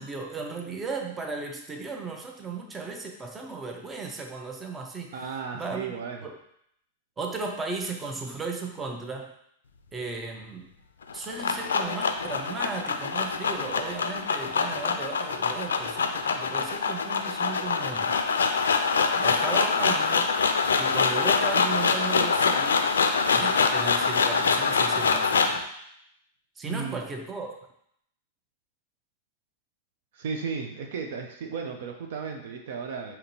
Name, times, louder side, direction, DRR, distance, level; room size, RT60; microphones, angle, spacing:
voice 1, 0.0-5.9 6.2-6.4 7.2-9.3 9.9-10.7 11.1-18.1 19.1-20.3 20.8-22.9 23.3-25.6 26.6-27.5, right 4 dB, 15° right, 2 dB, 0.6 m, -35 dB
voice 2, 5.1-6.3 26.7-27.0 30.1-33.2, right 5 dB, 60° right, 3 dB, 0.6 m, -34 dB
sound 1, 11.0-25.6, left 5 dB, 75° left, 0.4 m, -25 dB
5.0 x 2.9 x 2.9 m, 0.71 s
figure-of-eight pair, 100°, 0 cm